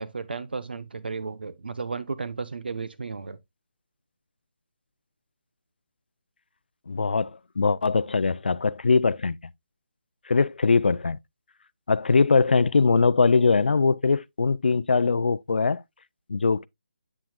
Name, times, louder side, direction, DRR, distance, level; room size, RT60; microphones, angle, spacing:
voice 1, 0.0-3.4, right 4 dB, 85° right, 0.9 m, -34 dB
voice 2, 6.9-9.4 10.3-11.2 11.9-15.8 16.3-16.7, left 4 dB, 90° left, 0.5 m, -21 dB
8.6 x 6.0 x 2.3 m
hypercardioid pair, 175°, 5 cm